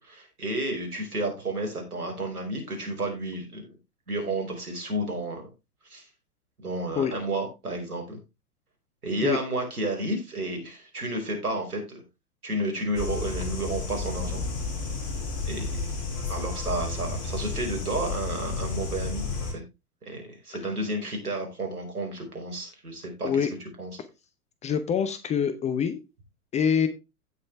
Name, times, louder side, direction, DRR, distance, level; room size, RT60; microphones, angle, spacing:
voice 1, 0.0-3.7 4.1-5.4 5.8-6.1 6.6-8.2 9.0-12.0 12.4-14.4 15.5-15.7 16.3-19.6 20.0-23.5 23.8-23.9, right 1 dB, 75° right, 2 dB, 5.0 m, -31 dB
sound 1, 12.9-19.5, left 4 dB, 45° left, 5.5 m, -32 dB
voice 2, 24.6-26.0 26.5-26.9, left 7 dB, 15° left, 11 dB, 0.7 m, -25 dB
16.0 x 5.4 x 3.3 m, 0.25 s
figure-of-eight pair, 100°, 45 cm